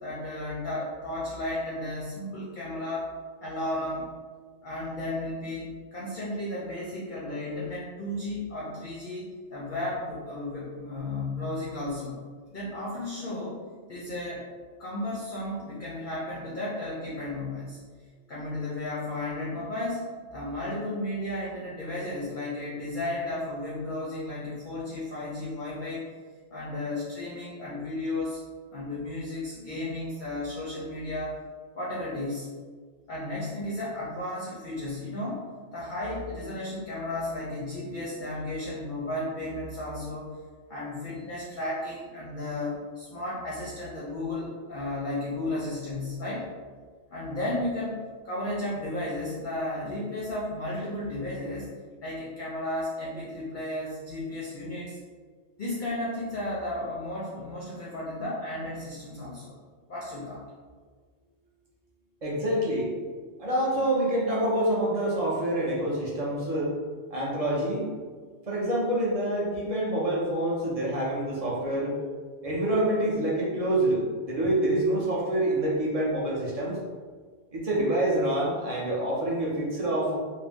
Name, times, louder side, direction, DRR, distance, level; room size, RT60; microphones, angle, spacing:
voice 1, 0.0-3.1 3.4-4.1 4.6-9.3 9.5-12.2 12.5-13.6 13.9-14.5 14.8-17.8 18.3-26.0 26.5-28.4 28.7-31.4 31.7-32.5 33.1-35.5 35.7-40.3 40.7-46.5 47.1-51.7 52.0-55.0 55.6-59.5 59.9-60.4, left 1 dB, 50° left, -6 dB, 0.6 m, -34 dB
voice 2, 62.2-62.9 63.4-66.7 67.1-67.9 68.5-72.0 72.4-76.8 77.5-80.2, right 1 dB, 40° right, -5 dB, 0.6 m, -26 dB
2.5 x 2.1 x 3.4 m, 1.5 s
omnidirectional pair, 1.3 m